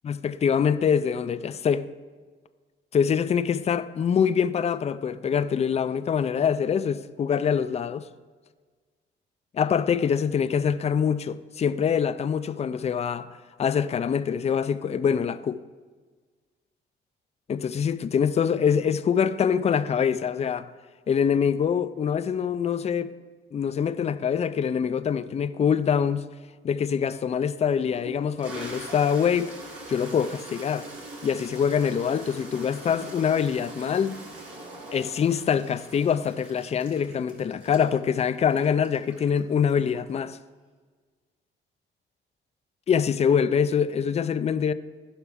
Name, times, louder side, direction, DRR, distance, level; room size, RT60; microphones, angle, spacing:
voice 1, 0.0-1.9 2.9-8.1 9.5-13.3 13.6-15.6 17.5-20.7 21.1-23.1 23.5-26.3 26.6-29.5 29.9-30.9 31.2-34.2 34.9-40.4 42.9-44.7, left 7 dB, 35° left, 0.4 m, -24 dB
Toilet flush, 27.1-27.2 27.8-40.3, right 2 dB, 85° right, 2.1 m, -43 dB
15.5 x 5.8 x 3.5 m
cardioid pair, 90°, 20 cm